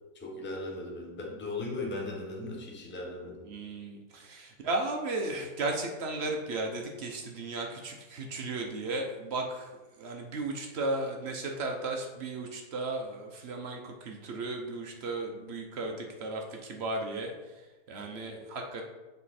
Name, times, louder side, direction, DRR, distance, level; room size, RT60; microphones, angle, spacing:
voice 1, 0.1-3.5, left 2 dB, 15° left, 0 dB, 0.4 m, -37 dB
voice 2, 3.5-9.7 10.0-17.3 17.9-18.8, right 2 dB, 60° right, 2 dB, 0.7 m, -35 dB
7.2 x 4.1 x 4.2 m, 1.2 s
omnidirectional pair, 1.9 m